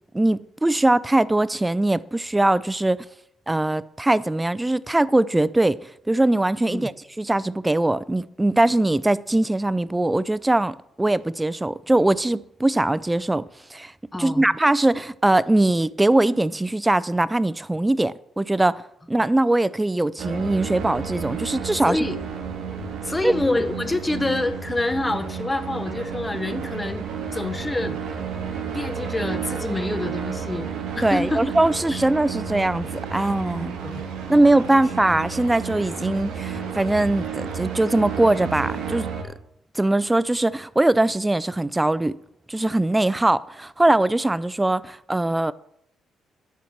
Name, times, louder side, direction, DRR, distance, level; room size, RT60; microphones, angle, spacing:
voice 1, 0.1-3.0 3.5-5.8 6.1-6.9 7.2-13.4 13.7-13.9 14.2-18.8 19.1-22.0 23.2-23.3 31.0-33.8 34.3-39.1 39.7-42.2 42.5-45.5, right 2 dB, 15° right, 0.4 m, -21 dB
voice 2, 14.1-14.5 21.8-22.2 23.0-27.1 27.3-28.0 28.7-30.7 30.9-31.4 31.9-32.0 33.8-34.0, left 2 dB, 15° left, 0.8 m, -26 dB
sound 1, 20.2-39.2, right 7 dB, 70° right, 1.7 m, -32 dB
sound 2, 20.8-39.0, right 4 dB, 90° right, 2.0 m, -41 dB
10.0 x 4.6 x 7.2 m
cardioid pair, 90°, 0 cm